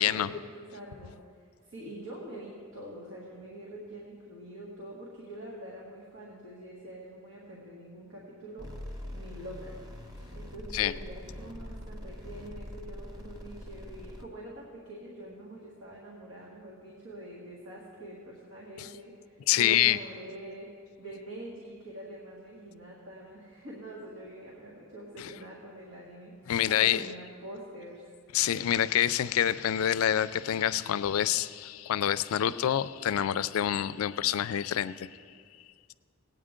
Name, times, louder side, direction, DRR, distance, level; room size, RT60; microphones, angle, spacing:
voice 1, 0.0-8.7 9.1-9.8 10.3-28.1, right 1 dB, 80° right, -5 dB, 1.9 m, -45 dB
sound 1, 8.6-14.2, left 1 dB, 20° right, 0.9 m, -43 dB
voice 2, 19.5-20.0 25.2-25.3 26.5-27.0 28.3-35.1, left 10 dB, 85° left, 15 dB, 0.4 m, -27 dB
18.0 x 9.1 x 3.7 m, 2.1 s
head